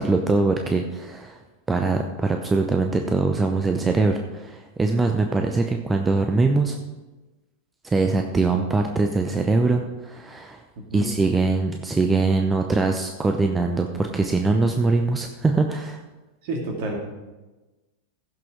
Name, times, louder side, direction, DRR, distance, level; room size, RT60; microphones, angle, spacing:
voice 1, 0.0-1.4 1.7-6.8 7.8-10.6 10.9-16.0, right 3 dB, 15° right, 4 dB, 0.7 m, -22 dB
voice 2, 16.4-17.0, right 2 dB, 50° right, 1 dB, 2.6 m, -29 dB
15.5 x 6.1 x 4.6 m, 1.1 s
figure-of-eight pair, 90°, 0 cm